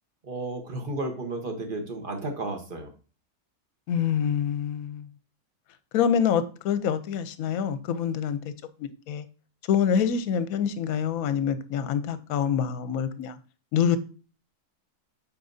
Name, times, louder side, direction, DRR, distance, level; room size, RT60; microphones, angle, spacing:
voice 1, 0.2-2.9, right 2 dB, 35° right, 1.3 m, -33 dB
voice 2, 3.9-5.1 5.9-8.5 8.8-9.3 9.7-13.4 13.7-14.0, left 8 dB, 70° left, 1.1 m, -26 dB
8.5 x 4.6 x 2.7 m
omnidirectional pair, 1.6 m